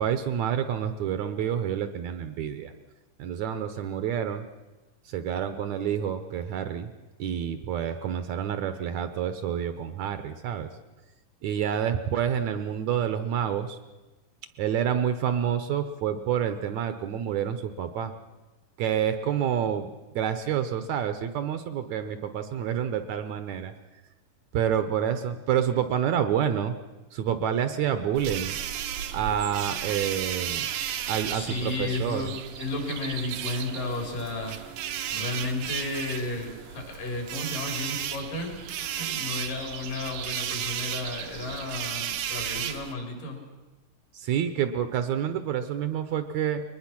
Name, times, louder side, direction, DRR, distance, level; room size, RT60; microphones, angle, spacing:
voice 1, 0.0-2.7 3.2-4.5 5.1-6.9 7.2-10.7 11.4-13.8 14.6-18.1 18.8-19.9 20.2-23.7 24.5-26.8 27.1-28.6 29.1-30.7 31.1-32.3 44.1-46.6, right 9 dB, 70° right, 10 dB, 1.9 m, -28 dB
sound 1, 28.2-42.9, right 10 dB, 85° right, 2.7 m, -34 dB
voice 2, 31.3-34.7 35.1-43.4, left 2 dB, 75° left, 2 dB, 5.5 m, -33 dB
22.0 x 20.0 x 6.0 m, 1.1 s
omnidirectional pair, 3.8 m